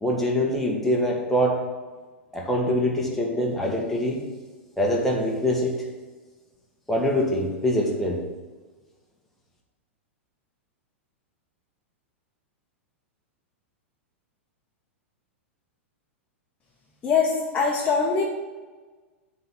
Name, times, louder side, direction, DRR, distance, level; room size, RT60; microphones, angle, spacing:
voice 1, 0.0-1.6 2.3-4.3 4.8-5.8 6.9-8.2, equal, 5° left, -3 dB, 1.8 m, -24 dB
voice 2, 17.0-18.2, left 5 dB, 20° left, -3 dB, 1.3 m, -22 dB
7.7 x 4.3 x 7.0 m, 1.3 s
figure-of-eight pair, 100°, 7 cm